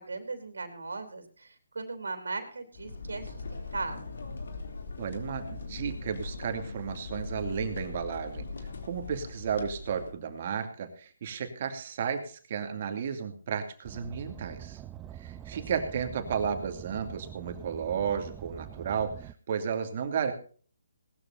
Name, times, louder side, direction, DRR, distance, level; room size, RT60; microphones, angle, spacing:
voice 1, 0.0-4.2 15.5-15.9, right 3 dB, 85° right, 7 dB, 3.4 m, -38 dB
sound 1, 2.7-10.1, left 3 dB, 70° left, 3.0 m, -40 dB
voice 2, 5.0-8.5 8.8-14.8 15.1-20.3, right 7 dB, 45° right, 5 dB, 2.6 m, -33 dB
Car, 13.8-19.3, right 11 dB, 15° right, 0.5 m, -45 dB
19.0 x 13.0 x 2.7 m, 0.42 s
hypercardioid pair, 155°, 0 cm